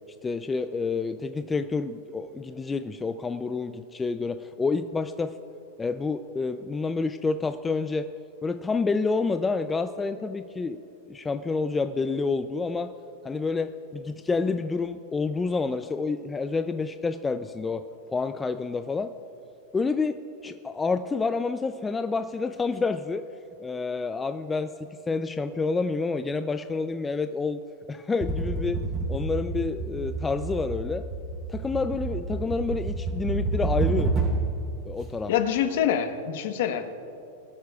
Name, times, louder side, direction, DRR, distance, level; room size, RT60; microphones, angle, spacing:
voice 1, 0.2-5.3 5.8-8.1 8.4-10.8 11.1-12.9 13.2-17.8 18.1-19.1 19.7-20.2 20.4-23.2 23.6-24.7 25.1-27.6 27.9-28.8 29.1-31.0 31.5-34.1 34.9-35.3, left 4 dB, 15° left, 9 dB, 0.4 m, -28 dB
sound 1, 28.2-34.6, right 3 dB, 25° right, 3.3 m, -29 dB
voice 2, 35.3-36.9, left 9 dB, 70° left, 7 dB, 1.1 m, -25 dB
21.5 x 12.5 x 2.4 m, 2.7 s
supercardioid pair, 130°, 0 cm